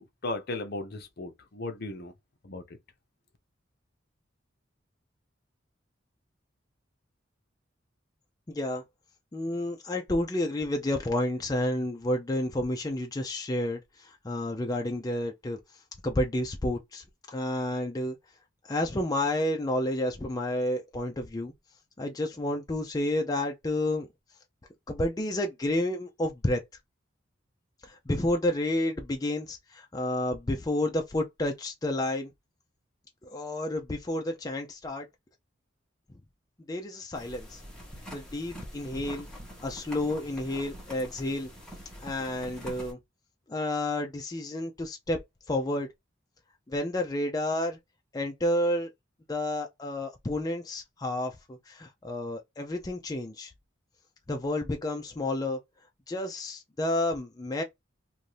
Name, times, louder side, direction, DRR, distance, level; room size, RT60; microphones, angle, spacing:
voice 1, 0.0-2.1 2.4-2.6, left 2 dB, 55° left, 0.7 m, -36 dB
voice 2, 8.5-8.8 9.3-15.6 16.0-17.0 17.3-18.1 18.7-21.5 22.0-24.1 24.9-26.6 27.8-32.3 33.3-35.0 36.7-37.6 38.1-39.3 39.6-41.5 42.0-43.0 43.5-45.2 45.5-45.9 46.7-47.8 48.1-48.9 49.3-51.4 51.7-53.5 54.3-55.6 56.1-57.6, left 1 dB, 20° left, 0.4 m, -30 dB
sound 1, 37.1-42.9, equal, 5° left, 1.2 m, -45 dB
2.6 x 2.6 x 3.2 m
head